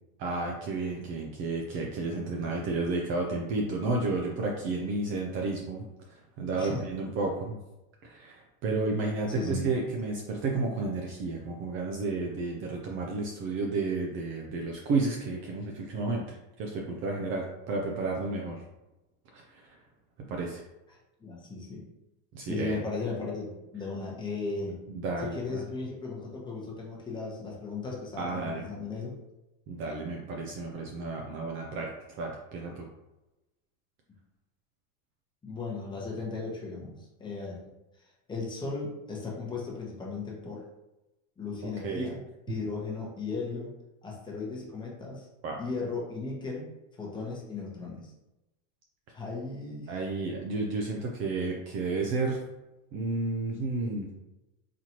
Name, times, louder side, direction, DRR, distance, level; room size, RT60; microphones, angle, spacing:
voice 1, 0.2-7.6 8.0-18.6 19.3-19.7 20.3-20.6 22.3-22.8 24.9-25.6 28.2-28.7 29.7-31.9 32.2-32.9 41.6-42.1 45.4-45.6 49.9-52.4 52.9-54.1, right 3 dB, 35° right, 0 dB, 0.5 m, -32 dB
voice 2, 9.3-9.6 21.2-21.8 22.4-24.8 25.2-29.1 35.4-37.6 38.3-40.6 41.4-42.2 42.5-43.7 44.0-45.3 45.6-46.7 47.0-48.1 49.1-50.0, left 3 dB, 10° left, -3 dB, 0.9 m, -36 dB
4.1 x 3.0 x 2.9 m, 0.97 s
supercardioid pair, 150°, 37 cm